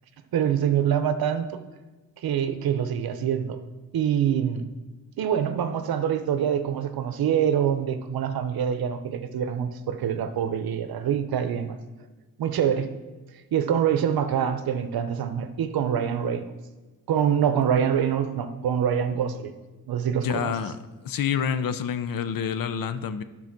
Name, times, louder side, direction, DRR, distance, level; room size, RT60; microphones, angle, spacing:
voice 1, 0.3-1.5 2.2-3.6 3.9-4.6 5.2-11.8 12.4-12.9 13.5-16.5 17.1-19.5 19.9-20.5, right 8 dB, 75° right, 10 dB, 0.8 m, -25 dB
voice 2, 20.2-20.8 21.0-23.2, left 8 dB, 65° left, 12 dB, 0.7 m, -27 dB
12.0 x 4.0 x 6.0 m, 1.2 s
wide cardioid pair, 115°, 36 cm